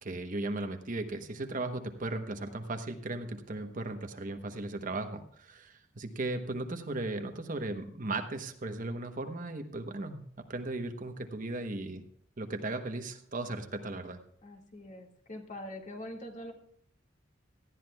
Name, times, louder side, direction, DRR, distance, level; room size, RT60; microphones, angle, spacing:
voice 1, 0.0-12.1 12.4-14.2, right 2 dB, 45° right, 7 dB, 1.0 m, -37 dB
voice 2, 14.4-16.5, left 1 dB, 40° left, 2 dB, 2.0 m, -43 dB
18.5 x 13.5 x 2.3 m, 0.65 s
head